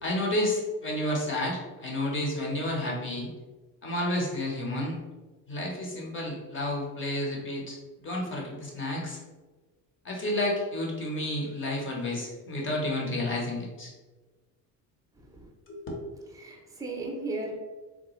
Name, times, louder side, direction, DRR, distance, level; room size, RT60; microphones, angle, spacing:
voice 1, 0.0-3.3 3.8-5.0 5.5-9.2 10.0-13.9 15.7-15.8, left 1 dB, 30° left, -2 dB, 1.0 m, -31 dB
voice 2, 15.1-15.5 16.2-17.5, right 2 dB, 10° right, 0 dB, 0.6 m, -36 dB
3.7 x 2.3 x 3.0 m, 1.2 s
cardioid pair, 115°, 40 cm